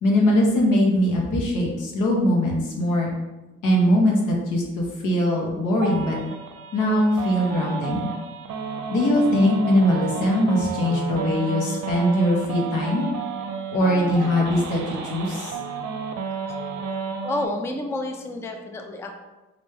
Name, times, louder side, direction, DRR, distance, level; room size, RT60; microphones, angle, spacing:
voice 1, 0.0-3.1 3.6-6.2 6.7-8.1 8.9-13.1 13.7-15.6, left 1 dB, 80° left, -2 dB, 1.0 m, -21 dB
sound 1, 5.8-17.5, right 5 dB, 65° right, 0.6 m, -32 dB
voice 2, 17.2-19.2, left 2 dB, 10° left, 3 dB, 0.3 m, -29 dB
3.2 x 2.6 x 3.3 m, 1.1 s
cardioid pair, 90°, 30 cm